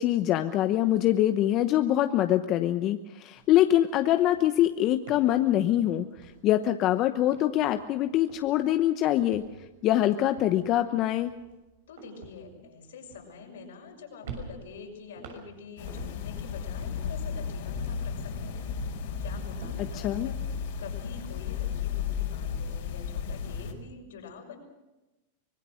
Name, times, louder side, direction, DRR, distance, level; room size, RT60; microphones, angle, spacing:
voice 1, 0.0-6.1 6.4-9.4 9.8-11.3 19.8-20.3, left 13 dB, 40° left, 8 dB, 0.9 m, -24 dB
sound 1, 3.3-3.6 3.8-6.8 7.2-8.0 8.3-8.7 9.2-13.9 14.2-16.4 16.8-18.2 18.6-20.6, right 4 dB, 75° right, 6.3 m, -48 dB
voice 2, 11.9-18.6 19.2-20.4 20.8-24.6, left 5 dB, 80° left, 2 dB, 5.9 m, -46 dB
sound 2, 15.8-23.7, left 7 dB, 65° left, 4.2 m, -34 dB
25.0 x 19.5 x 6.6 m, 1.0 s
hypercardioid pair, 120°, 0 cm